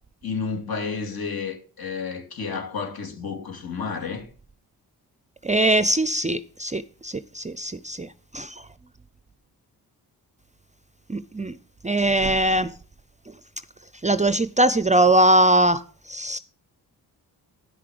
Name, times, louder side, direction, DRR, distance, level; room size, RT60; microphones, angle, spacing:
voice 1, 0.2-4.3, left 5 dB, 60° left, 2.5 m, -31 dB
voice 2, 5.4-8.5 11.1-11.6 11.8-12.7 14.0-16.4, right 1 dB, 20° right, 0.5 m, -21 dB
10.5 x 5.8 x 5.0 m
cardioid pair, 55°, 40 cm